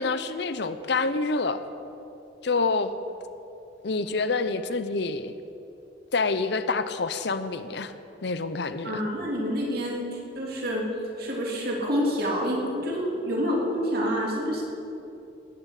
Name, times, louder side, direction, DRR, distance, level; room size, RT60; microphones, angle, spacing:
voice 1, 0.0-1.6 2.4-2.9 3.8-5.3 6.1-7.9 8.2-9.0, left 3 dB, 65° left, 11 dB, 0.7 m, -27 dB
voice 2, 8.8-10.8 11.2-14.6, equal, 55° right, -2 dB, 3.4 m, -28 dB
19.0 x 7.3 x 8.3 m, 2.8 s
head